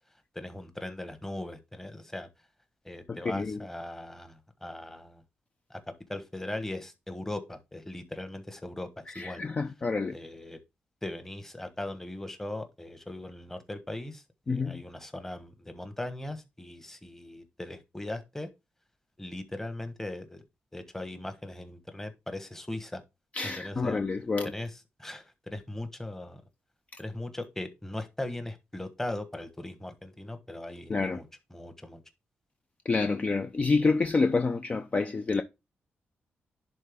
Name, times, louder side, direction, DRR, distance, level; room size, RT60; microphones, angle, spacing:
voice 1, 0.3-2.3 2.8-5.2 5.7-9.4 10.1-10.6 11.0-18.5 19.2-20.4 20.7-23.0 23.4-24.0 24.4-26.4 27.0-32.0, left 1 dB, 10° left, 1.2 m, -39 dB
voice 2, 3.1-3.6 9.1-10.2 14.5-14.8 23.3-24.5 30.9-31.2 32.9-35.4, left 4 dB, 30° left, 0.5 m, -28 dB
11.0 x 3.8 x 3.5 m
cardioid pair, 115°, 4 cm